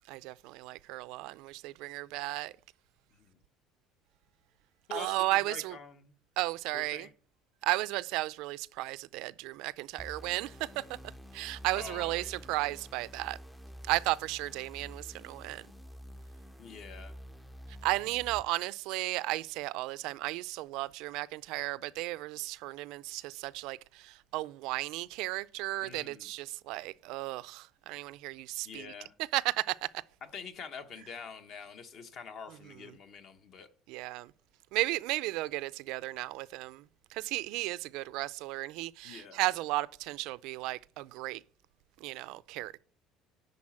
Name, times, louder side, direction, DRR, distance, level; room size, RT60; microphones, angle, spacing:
voice 1, 0.1-2.5 4.9-5.8 6.4-7.1 7.6-10.8 11.3-13.4 13.9-15.7 17.8-28.9 29.3-29.8 33.9-34.3 34.7-36.8 37.1-41.4 42.0-42.8, right 19 dB, 70° right, 0.4 m, -34 dB
voice 2, 4.9-6.1 6.7-7.1 11.7-12.4 16.6-17.1 25.8-26.3 28.6-29.1 30.2-33.7 39.0-39.4, left 6 dB, 45° left, 1.0 m, -46 dB
sound 1, 10.0-18.4, equal, 5° left, 0.5 m, -49 dB
10.5 x 4.1 x 7.4 m
cardioid pair, 155°, 0 cm